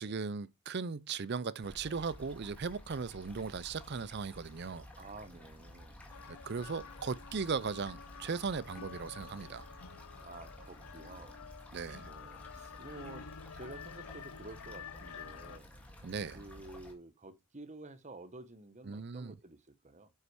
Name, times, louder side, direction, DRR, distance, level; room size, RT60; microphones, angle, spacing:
voice 1, 0.0-4.9 6.3-9.7 11.7-12.1 16.0-16.4 18.9-19.4, right 5 dB, 50° right, 0.5 m, -38 dB
sound 1, 1.6-16.9, equal, 5° left, 1.9 m, -53 dB
voice 2, 5.0-6.0 10.2-11.4 12.0-13.3 13.5-15.7 16.3-20.1, right 2 dB, 35° right, 1.0 m, -51 dB
sound 2, 6.1-15.6, left 6 dB, 85° left, 0.7 m, -50 dB
8.1 x 5.6 x 4.8 m
head